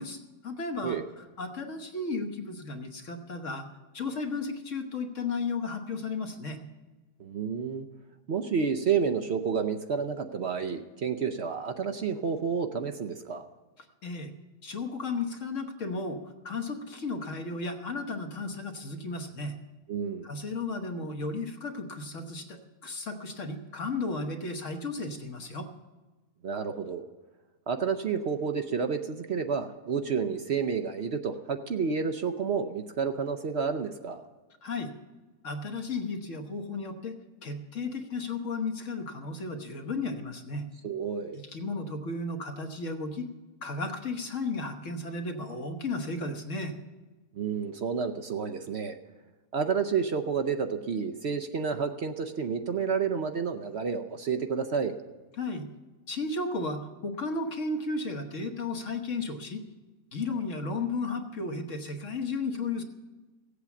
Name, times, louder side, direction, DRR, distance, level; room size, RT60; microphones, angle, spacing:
voice 1, 0.0-6.6 13.8-14.3 14.6-19.5 20.2-25.7 34.6-34.9 35.4-40.6 41.3-43.3 43.6-46.8 55.4-55.7 56.1-59.6 60.1-62.8, left 3 dB, 60° left, 5 dB, 1.5 m, -34 dB
voice 2, 7.2-7.9 8.3-13.4 19.9-20.3 26.4-27.0 27.7-34.2 40.8-41.4 47.3-49.0 49.5-54.9, right 6 dB, 55° right, 7 dB, 0.9 m, -30 dB
16.0 x 8.3 x 7.1 m, 1.2 s
omnidirectional pair, 1.5 m